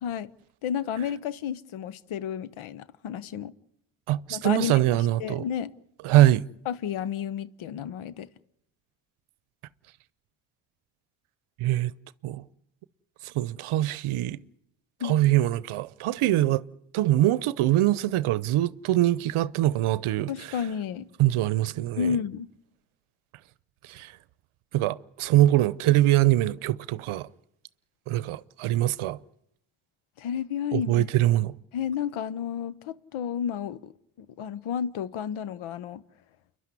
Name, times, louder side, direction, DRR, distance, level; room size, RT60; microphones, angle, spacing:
voice 1, 0.0-0.3 0.6-3.5 4.3-5.7 6.7-8.3 15.0-15.2 20.3-21.1 22.0-22.5 30.2-31.1 31.7-33.9 34.2-36.0, left 8 dB, 70° left, 0.9 m, -31 dB
voice 2, 4.1-5.4 6.0-6.4 11.6-11.9 12.2-12.4 13.2-14.4 15.0-16.6 16.9-20.3 21.2-22.1 23.8-24.1 24.7-27.3 28.1-29.2 30.7-31.5, right 14 dB, 75° right, 0.8 m, -23 dB
29.5 x 11.5 x 9.7 m
supercardioid pair, 50°, 50 cm